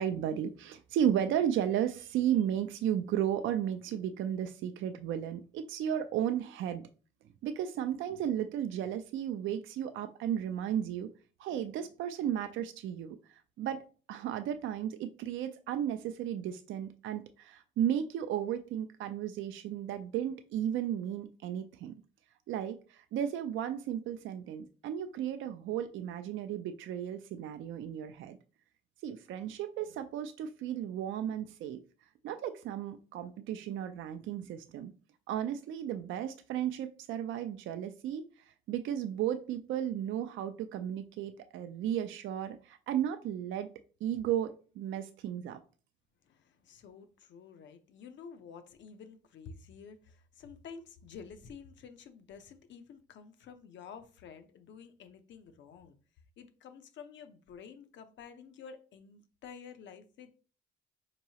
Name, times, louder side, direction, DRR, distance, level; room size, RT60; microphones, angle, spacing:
voice 1, 0.0-6.8 7.4-11.1 11.4-13.2 13.6-13.8 14.1-21.9 22.5-28.4 29.0-31.8 32.2-34.9 35.3-38.2 38.7-43.7 44.0-45.6, right 10 dB, 75° right, 0.4 m, -34 dB
voice 2, 46.2-56.0 56.4-60.4, left 6 dB, 65° left, 0.6 m, -50 dB
4.5 x 2.9 x 2.8 m
cardioid pair, 90°, 20 cm